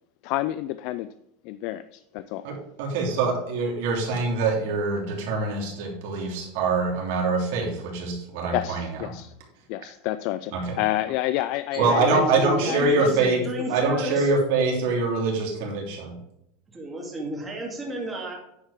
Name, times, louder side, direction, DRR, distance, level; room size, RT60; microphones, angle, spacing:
voice 1, 0.2-1.1 1.4-2.5 8.5-9.3 9.7-12.2 12.6-13.8, left 15 dB, 55° left, 13 dB, 0.3 m, -29 dB
voice 2, 2.4-8.9 10.5-10.8 11.8-13.4 13.7-16.1, right 3 dB, 65° right, -1 dB, 3.1 m, -24 dB
voice 3, 11.8-14.3 16.7-18.4, equal, 10° right, -1 dB, 2.3 m, -32 dB
9.9 x 4.8 x 5.0 m, 0.81 s
supercardioid pair, 140°, 0 cm